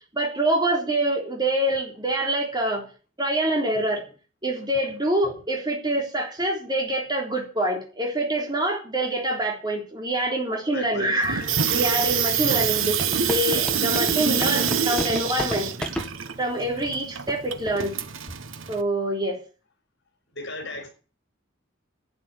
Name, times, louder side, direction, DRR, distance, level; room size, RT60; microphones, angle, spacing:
voice 1, 0.1-2.8 3.2-4.0 4.4-15.7 16.4-18.0 18.7-19.4, right 1 dB, 20° right, 3.6 m, -25 dB
voice 2, 10.7-11.2 20.3-20.9, left 2 dB, 60° left, 4.9 m, -36 dB
Water tap faucet / Sink (filling or washing), 11.2-18.8, right 7 dB, 85° right, 1.1 m, -26 dB
sound 1, 13.0-16.1 16.8-16.9 17.3-17.4 17.7-17.9 18.3-18.5, equal, 5° left, 1.5 m, -31 dB
11.5 x 9.2 x 9.5 m
head